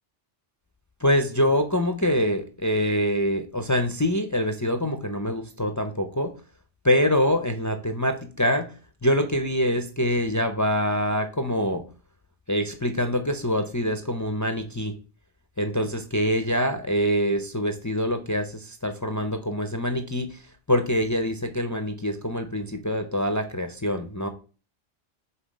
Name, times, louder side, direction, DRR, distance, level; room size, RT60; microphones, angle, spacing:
voice 1, 1.0-6.4 6.8-8.7 9.0-11.9 12.5-15.0 15.6-20.4 20.7-24.3, equal, 25° left, 6 dB, 0.4 m, -25 dB
5.6 x 3.9 x 5.1 m, 0.35 s
omnidirectional pair, 1.2 m